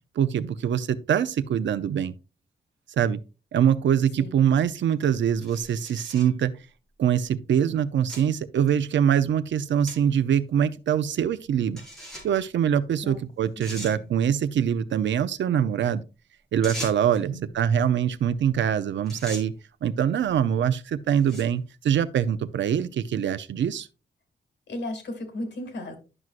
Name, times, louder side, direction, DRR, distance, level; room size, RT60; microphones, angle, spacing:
voice 1, 0.2-2.1 2.9-3.2 3.5-6.5 7.0-11.8 12.2-16.0 16.5-19.5 19.8-23.9, right 9 dB, 85° right, 0.6 m, -24 dB
sound 1, 5.4-6.3 7.1-7.2 8.1-8.2 8.7-8.8 9.9-10.0 10.3-10.4 11.8-12.4 13.1-13.2 13.6-14.0 16.6-17.2 18.5-18.7 19.1-19.5 20.3-20.5 21.1-21.6, equal, ahead, 3.9 m, -39 dB
voice 2, 13.7-14.1 17.2-17.5 24.7-25.9, left 1 dB, 70° left, 2.4 m, -36 dB
11.0 x 6.1 x 2.5 m
wide cardioid pair, 140°, 19 cm